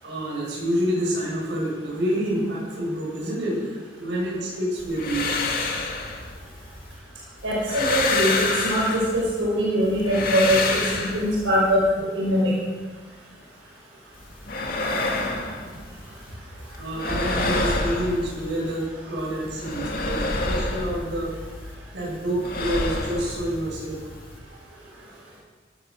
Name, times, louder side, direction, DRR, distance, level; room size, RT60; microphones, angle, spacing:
voice 1, 0.0-5.3 16.8-21.3 21.9-24.1 24.5-24.6, equal, 65° right, -4 dB, 6.9 m, -28 dB
sound 1, 4.8-7.0 7.4-9.4 9.8-11.7 14.1-16.3 16.6-18.9 19.2-21.7 22.0-24.4, left 2 dB, 45° left, 2.3 m, -28 dB
voice 2, 7.4-12.5, equal, 85° right, -4 dB, 5.5 m, -22 dB
17.0 x 13.0 x 6.5 m, 1.4 s
head